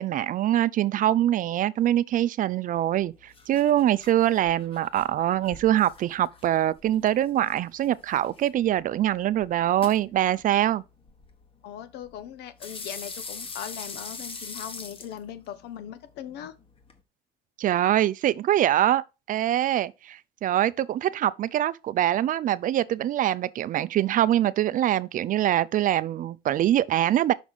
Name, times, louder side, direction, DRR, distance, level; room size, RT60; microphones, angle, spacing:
voice 1, 0.0-10.8 17.6-19.0 19.3-27.3, right 12 dB, 50° right, 0.4 m, -24 dB
sound 1, 2.8-17.0, left 4 dB, 30° left, 1.4 m, -44 dB
voice 2, 11.6-16.5, left 10 dB, 85° left, 1.0 m, -39 dB
6.0 x 4.0 x 6.1 m
cardioid pair, 110°, 17 cm